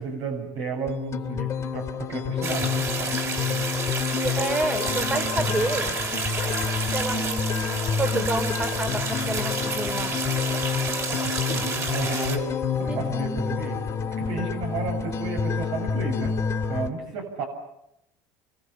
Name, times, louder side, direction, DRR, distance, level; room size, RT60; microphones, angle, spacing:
voice 1, 0.0-3.7 11.1-12.4 12.8-13.8 14.2-16.3 16.7-17.4, right 4 dB, 60° right, 3 dB, 7.5 m, -33 dB
sound 1, 0.9-16.9, left 6 dB, 35° left, 2.3 m, -28 dB
sound 2, 2.4-12.4, right 4 dB, 30° right, 5.9 m, -30 dB
voice 2, 3.9-6.0 6.9-7.7 8.0-10.2 12.9-13.0, right 2 dB, 15° right, 9 dB, 2.9 m, -29 dB
30.0 x 25.0 x 7.2 m, 0.85 s
supercardioid pair, 130°, 9 cm